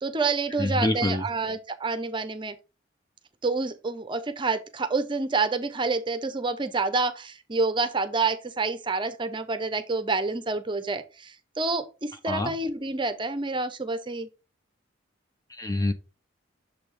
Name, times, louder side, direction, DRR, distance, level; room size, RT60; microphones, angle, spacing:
voice 1, 0.0-2.6 3.4-14.3, right 3 dB, 25° right, 0.6 m, -28 dB
voice 2, 0.6-1.2 12.3-12.5 15.6-15.9, left 2 dB, 20° left, 0.5 m, -26 dB
6.9 x 3.4 x 4.6 m
head